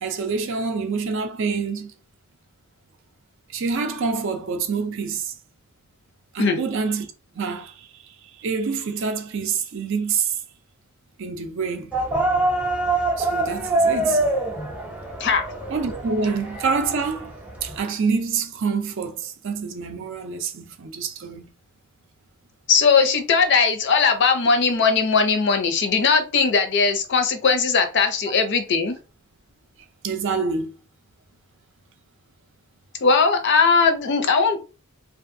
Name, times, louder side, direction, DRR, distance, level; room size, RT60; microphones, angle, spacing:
voice 1, 0.0-1.9 3.5-5.3 6.3-7.1 7.4-7.9 8.4-10.3 11.2-11.9 13.2-14.2 15.7-17.3 17.6-21.5 30.0-30.7, right 5 dB, 55° right, 0.4 m, -26 dB
sound 1, 11.9-17.8, right 2 dB, 5° right, 0.5 m, -25 dB
voice 2, 22.7-29.0 33.0-34.6, left 5 dB, 50° left, 0.5 m, -19 dB
2.6 x 2.3 x 2.5 m
head